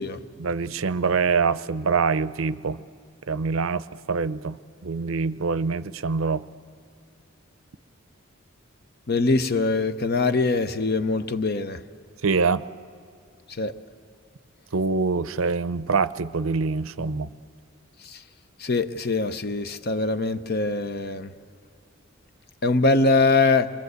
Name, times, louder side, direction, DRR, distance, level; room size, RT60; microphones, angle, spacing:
voice 1, 0.4-2.8 3.3-6.4 12.2-12.6 14.7-17.3, right 4 dB, 75° right, 15 dB, 0.6 m, -25 dB
voice 2, 9.1-11.8 13.6-13.7 18.6-21.3 22.6-23.7, left 3 dB, 50° left, 11 dB, 0.8 m, -23 dB
28.0 x 23.0 x 8.1 m, 2.3 s
head